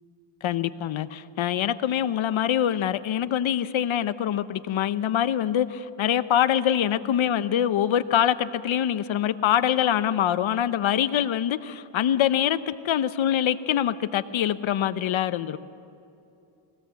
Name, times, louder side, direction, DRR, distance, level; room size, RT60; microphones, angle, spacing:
voice 1, 0.4-15.6, left 10 dB, 70° left, 13 dB, 0.8 m, -24 dB
22.0 x 16.5 x 7.7 m, 2.7 s
cardioid pair, 115°, 49 cm